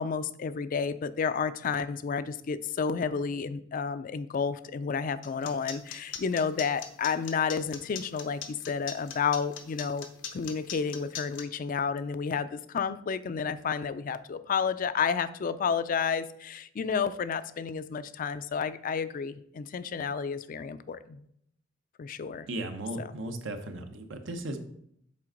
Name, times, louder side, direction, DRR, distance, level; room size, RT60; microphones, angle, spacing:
voice 1, 0.0-21.3 22.0-22.5 23.0-23.1, left 6 dB, 45° left, 14 dB, 0.4 m, -31 dB
sound 1, 5.2-11.4, left 8 dB, 85° left, 0.8 m, -39 dB
voice 2, 22.5-24.6, right 1 dB, 80° right, 6 dB, 0.8 m, -36 dB
7.5 x 4.3 x 3.8 m, 0.71 s
head